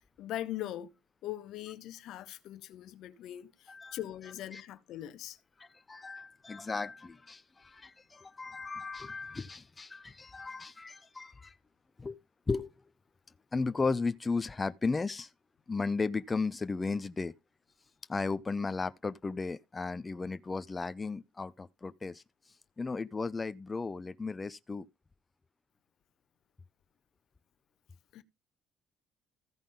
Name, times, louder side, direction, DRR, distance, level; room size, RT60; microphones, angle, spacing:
voice 1, 0.2-0.9 1.2-5.4 28.1-28.2, left 13 dB, 75° left, 0.8 m, -41 dB
voice 2, 3.7-4.0 4.5-4.6 5.6-11.6 12.0-12.2 12.5-12.7 13.5-15.3 15.7-17.3 18.1-22.2 22.8-24.9, left 4 dB, 25° left, 0.5 m, -35 dB
15.0 x 5.2 x 3.9 m
cardioid pair, 95°, 0 cm